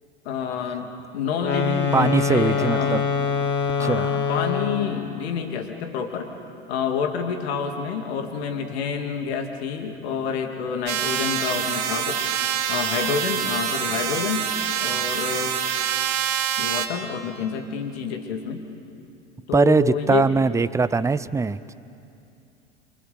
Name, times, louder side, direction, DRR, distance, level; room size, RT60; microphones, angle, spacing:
voice 1, 0.2-3.1 3.7-6.3 6.7-12.3 12.7-14.5 14.8-15.6 16.6-18.6 19.5-20.3, left 6 dB, 65° left, 5 dB, 2.6 m, -28 dB
sound 1, 1.3-5.0, left 5 dB, 30° left, 2.6 m, -24 dB
voice 2, 1.9-3.0 3.8-4.1 19.5-21.7, right 4 dB, 10° right, 15 dB, 0.6 m, -21 dB
sound 2, 10.9-16.9, right 9 dB, 50° right, 2.6 m, -26 dB
28.0 x 25.0 x 7.0 m, 2.6 s
figure-of-eight pair, 80°, 34 cm